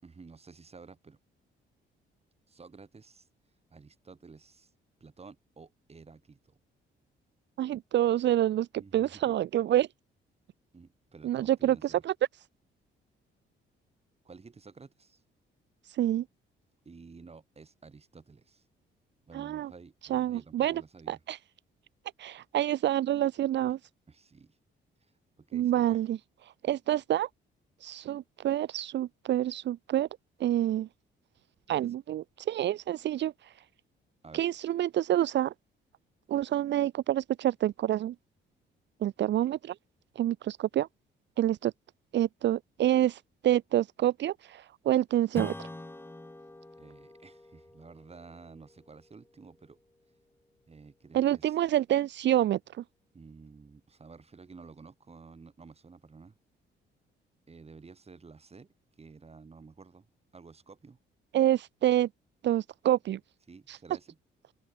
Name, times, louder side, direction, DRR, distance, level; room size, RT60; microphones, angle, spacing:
voice 1, 0.0-1.2 2.5-3.3 3.7-4.7 5.0-6.6 8.8-9.4 10.7-12.0 14.2-15.2 16.8-18.7 19.2-21.2 23.7-23.8 24.1-24.6 25.0-26.0 31.7-31.9 34.2-34.5 46.8-49.8 50.7-51.6 53.1-56.4 57.5-58.7 59.0-60.1 60.3-61.0 63.5-64.2, right 4 dB, 30° right, 6.0 m, -52 dB
voice 2, 7.6-8.7 8.9-9.9 11.2-12.1 15.9-16.2 19.3-19.7 20.1-20.8 21.1-21.4 22.2-23.8 25.5-26.2 26.4-27.3 27.8-30.1 30.4-30.9 31.7-33.5 34.3-35.5 36.3-38.1 39.0-39.7 40.2-40.9 41.4-41.7 42.1-45.7 51.1-52.8 61.3-62.1 62.4-63.2 63.7-63.8, right 12 dB, 65° right, 0.7 m, -27 dB
Strum, 45.3-50.3, left 2 dB, 10° left, 2.9 m, -45 dB
open air
cardioid pair, 90°, 20 cm